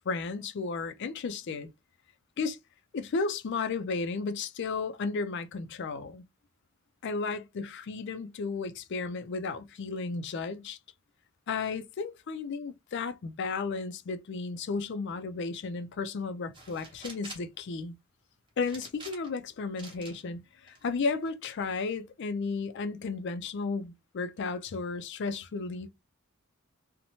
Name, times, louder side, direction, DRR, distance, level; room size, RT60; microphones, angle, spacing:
voice 1, 0.1-1.7 2.4-2.6 2.9-6.2 7.0-10.8 11.5-17.9 18.6-25.9, left 4 dB, 55° left, 0.4 m, -34 dB
sound 1, 16.5-17.5 18.7-19.4 19.8-20.2 20.7-21.3, right 2 dB, 25° right, 1.0 m, -46 dB
2.7 x 2.1 x 2.8 m
head